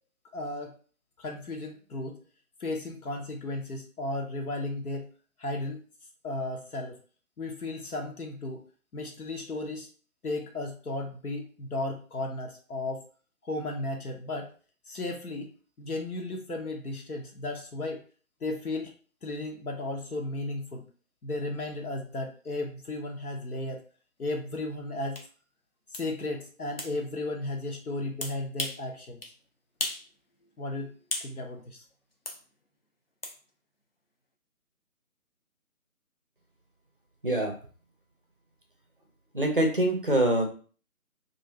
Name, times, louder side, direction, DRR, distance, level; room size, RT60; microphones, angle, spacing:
voice 1, 0.3-0.7 1.2-2.2 2.6-5.1 5.4-5.8 6.2-7.0 7.4-8.6 8.9-9.9 10.2-13.0 13.4-14.5 14.9-18.0 18.4-18.9 19.2-20.9 21.2-23.8 24.2-25.2 25.9-29.2 30.6-30.9 31.2-31.8, left 2 dB, 80° left, 2 dB, 0.8 m, -34 dB
sound 1, 25.1-25.3 25.9-26.1 26.8-26.9 28.2-28.8 29.2-29.3 29.8-30.1 30.4-31.3 32.3-32.4 33.2-33.4, left 1 dB, 45° left, 0.4 m, -35 dB
voice 2, 37.2-37.5 39.3-40.5, right 1 dB, 40° right, 3 dB, 0.5 m, -24 dB
2.5 x 2.4 x 3.1 m, 0.39 s
figure-of-eight pair, 155°, 44 cm